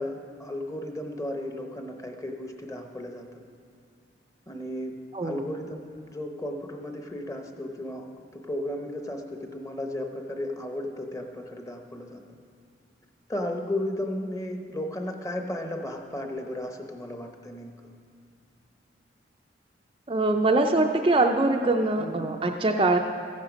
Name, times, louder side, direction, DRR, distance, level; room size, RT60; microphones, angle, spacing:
voice 1, 0.0-3.4 4.5-8.1 8.3-12.2 13.3-17.7 22.0-22.3, left 1 dB, 15° left, 4 dB, 0.8 m, -34 dB
voice 2, 5.1-5.5 20.1-23.0, right 2 dB, 25° right, 3 dB, 0.4 m, -23 dB
14.0 x 10.5 x 5.2 m, 2.3 s
head